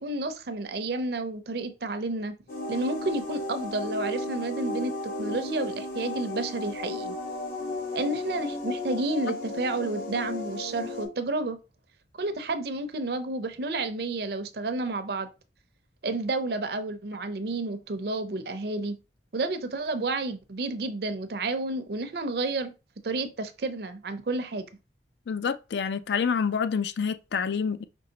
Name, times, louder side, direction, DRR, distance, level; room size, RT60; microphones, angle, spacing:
voice 1, 0.0-2.3 2.7-7.1 7.9-11.6 12.2-15.3 16.0-19.0 19.3-22.7 23.0-24.7, right 2 dB, 60° right, 0.5 m, -31 dB
sound 1, 2.5-11.0, left 2 dB, 50° left, 1.1 m, -34 dB
voice 2, 25.3-27.8, left 6 dB, 70° left, 0.4 m, -27 dB
5.3 x 3.1 x 2.8 m
head